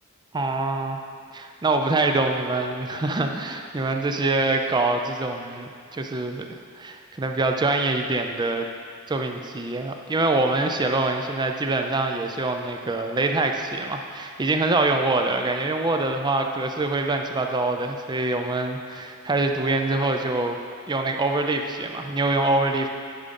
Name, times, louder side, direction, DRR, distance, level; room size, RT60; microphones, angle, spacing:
voice 1, 0.3-1.0 1.3-6.5 6.8-8.7 9.1-20.6 20.9-22.9, right 2 dB, 20° right, 4 dB, 0.4 m, -25 dB
10.5 x 3.7 x 5.3 m, 2.2 s
head